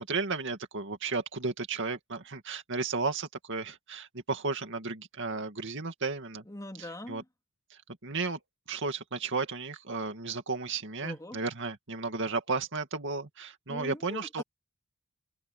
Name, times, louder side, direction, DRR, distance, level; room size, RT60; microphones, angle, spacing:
voice 1, 0.0-6.4 6.8-7.2 7.7-8.4 8.7-14.4, right 4 dB, 60° right, 2.3 m, -34 dB
voice 2, 6.5-7.2 11.0-11.4 13.7-14.4, left 1 dB, 15° left, 3.2 m, -42 dB
head